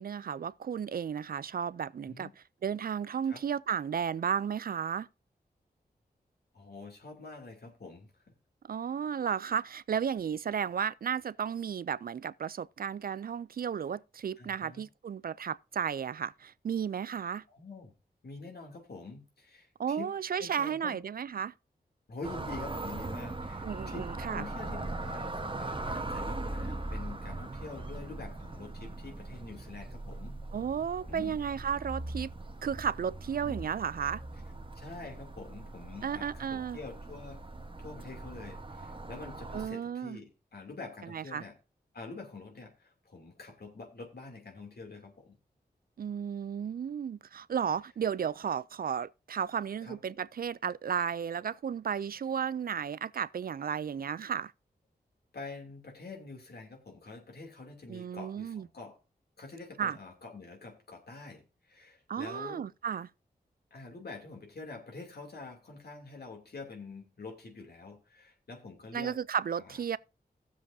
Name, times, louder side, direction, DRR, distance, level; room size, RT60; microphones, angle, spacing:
voice 1, 0.0-2.3 2.6-5.1 8.7-17.4 19.8-21.5 23.6-24.4 30.5-32.3 32.6-34.2 36.0-36.8 39.5-40.2 41.0-41.5 46.0-54.5 57.9-58.7 59.8-60.0 62.1-63.1 68.9-70.0, right 7 dB, 60° right, 0.4 m, -33 dB
voice 2, 6.5-8.1 14.4-14.8 17.5-17.9 18.2-20.1 20.4-21.0 22.1-30.4 31.1-31.4 33.4-33.7 34.7-37.4 37.8-41.5 41.9-45.3 49.8-50.0 55.3-59.0 59.4-62.7 63.7-69.2 69.6-69.8, left 3 dB, 70° left, 2.8 m, -46 dB
sound 1, 22.2-39.7, right 2 dB, 30° right, 1.2 m, -40 dB
16.0 x 7.4 x 2.7 m
cardioid pair, 50°, 17 cm